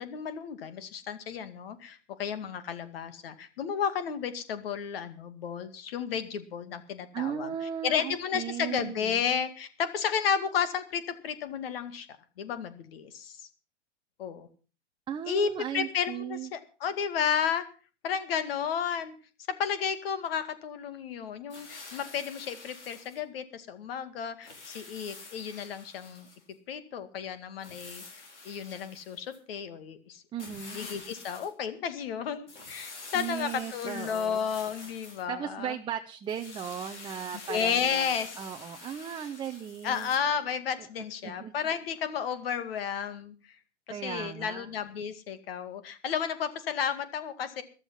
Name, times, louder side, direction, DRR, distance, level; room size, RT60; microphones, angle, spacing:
voice 1, 0.0-7.5 7.8-12.1 12.4-13.4 14.2-14.5 15.3-15.5 15.7-17.7 18.0-19.1 19.5-26.3 26.7-28.0 28.5-30.2 30.7-35.7 37.5-38.4 39.8-43.3 43.9-47.6, left 7 dB, 50° left, 12 dB, 2.2 m, -32 dB
voice 2, 7.1-9.2 15.1-16.5 30.3-30.8 33.1-34.4 35.3-40.1 41.0-41.5 43.9-44.7, right 9 dB, 15° right, 5 dB, 0.7 m, -37 dB
sound 1, 21.5-23.2 24.4-26.4 27.6-29.4 30.4-31.5 32.5-35.2 36.3-40.2, left 3 dB, 70° left, 4.4 m, -47 dB
14.0 x 13.0 x 5.6 m, 0.37 s
figure-of-eight pair, 105°, 36 cm